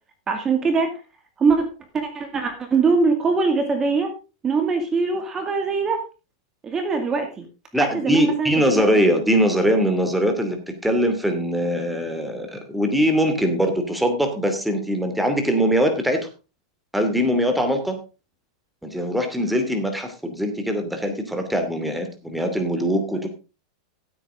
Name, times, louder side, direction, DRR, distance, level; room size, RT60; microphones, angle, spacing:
voice 1, 0.3-0.9 1.4-1.7 1.9-4.1 4.4-6.0 6.6-7.5 7.8-8.8, right 4 dB, 25° right, 5 dB, 2.2 m, -22 dB
voice 2, 7.7-16.3 16.9-18.0 18.8-23.3, equal, 5° right, 6 dB, 2.6 m, -22 dB
15.5 x 8.6 x 3.7 m, 0.32 s
hypercardioid pair, 115°, 2 cm